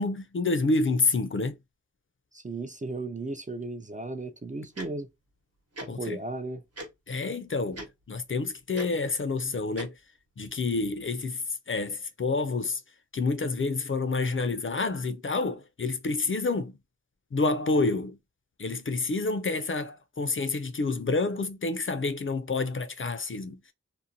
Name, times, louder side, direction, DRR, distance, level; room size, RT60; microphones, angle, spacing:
voice 1, 0.0-1.6 5.9-6.2 7.1-9.9 10.4-12.8 13.1-16.7 17.3-18.2 18.6-23.6, left 3 dB, 40° left, 0.4 m, -28 dB
voice 2, 2.3-5.1 6.0-6.6, right 2 dB, 25° right, 0.4 m, -35 dB
Tick-tock, 4.7-4.9 5.7-5.9 6.8-6.9 7.7-7.9 8.7-8.9 9.8-9.9, right 1 dB, 50° right, 1.0 m, -38 dB
2.5 x 2.1 x 2.7 m
wide cardioid pair, 50°, 31 cm